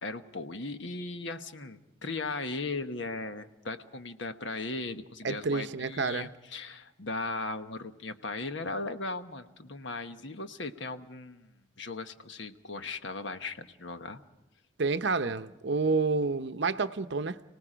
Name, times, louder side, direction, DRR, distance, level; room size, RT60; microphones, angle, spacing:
voice 1, 0.0-11.5 11.8-14.2, left 3 dB, 65° left, 8 dB, 1.2 m, -37 dB
voice 2, 5.2-6.3 14.8-17.4, right 4 dB, 60° right, 11 dB, 0.7 m, -29 dB
30.0 x 18.5 x 5.1 m, 0.95 s
head